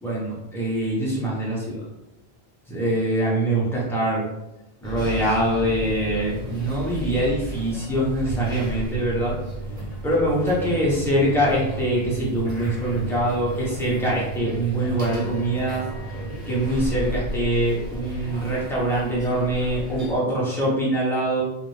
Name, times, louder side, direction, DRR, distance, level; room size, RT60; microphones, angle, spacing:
voice 1, 0.0-1.8 2.7-4.2 4.8-9.4 10.0-15.9 16.5-21.4, right 1 dB, ahead, -6 dB, 1.1 m, -24 dB
sound 1, 4.8-20.2, right 1 dB, 40° right, 1.4 m, -33 dB
Wind instrument woodwind instrument, 15.0-19.4, left 3 dB, 70° right, 1.0 m, -51 dB
3.8 x 2.6 x 3.3 m, 0.92 s
omnidirectional pair, 1.1 m